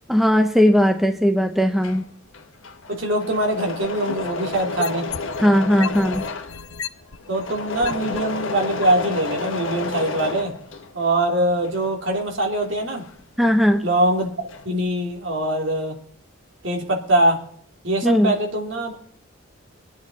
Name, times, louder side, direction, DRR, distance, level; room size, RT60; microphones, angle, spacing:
voice 1, 0.1-2.0 5.4-6.2 13.4-13.9 18.0-18.3, equal, ahead, 0.7 m, -18 dB
Engine / Mechanisms, 1.6-11.2 11.5-13.9 14.1-14.8, left 3 dB, 70° left, 1.2 m, -31 dB
voice 2, 2.9-5.1 7.3-10.5 10.9-13.0 13.8-16.0 16.6-17.4 17.8-19.0, right 1 dB, 65° right, 3.0 m, -23 dB
sound 1, 3.8-5.4 5.8-8.2 8.8-8.9, left 6 dB, 90° left, 0.9 m, -33 dB
25.0 x 9.4 x 4.1 m
head